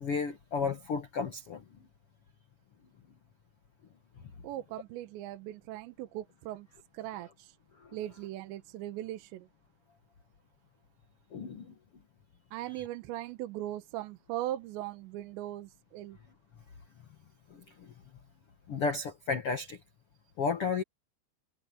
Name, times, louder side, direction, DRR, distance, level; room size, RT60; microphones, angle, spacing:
voice 1, 0.0-1.6 11.3-11.7 18.7-19.8 20.4-20.8, left 5 dB, 70° left, 1.4 m, -32 dB
voice 2, 4.4-6.7 6.9-7.6 7.9-9.5 12.5-16.2, right 14 dB, 85° right, 3.3 m, -39 dB
omnidirectional pair, 5.0 m